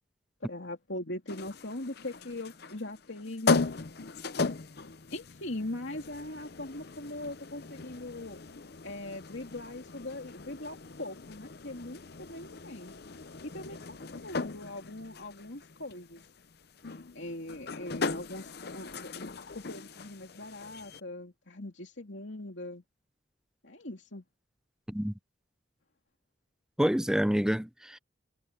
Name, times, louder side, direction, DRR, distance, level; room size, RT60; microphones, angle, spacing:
voice 1, 0.4-3.6 5.1-8.4 8.8-12.9 13.4-16.2 17.1-19.1 19.5-22.8 23.6-24.2, left 1 dB, 70° left, 2.9 m, -41 dB
sound 1, 1.3-21.0, left 4 dB, 55° left, 0.7 m, -37 dB
voice 2, 26.8-28.0, equal, 5° right, 0.4 m, -27 dB
head